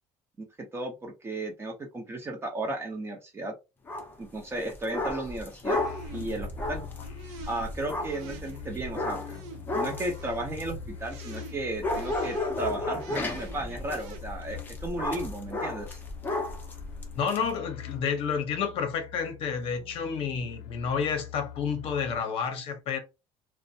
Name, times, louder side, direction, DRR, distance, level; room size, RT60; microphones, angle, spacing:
voice 1, 0.7-3.5 4.2-5.8 6.1-6.8 7.5-9.2 9.7-16.0, right 2 dB, 20° right, 0.6 m, -34 dB
sound 1, 3.9-4.2 4.6-11.5 11.8-17.4, left 2 dB, 15° left, 0.6 m, -34 dB
sound 2, 5.7-14.2, right 6 dB, 80° right, 0.5 m, -46 dB
sound 3, 5.8-22.2, left 10 dB, 90° left, 0.5 m, -44 dB
voice 2, 17.1-23.0, left 6 dB, 55° left, 0.7 m, -30 dB
2.4 x 2.1 x 2.7 m
cardioid pair, 140°, 11 cm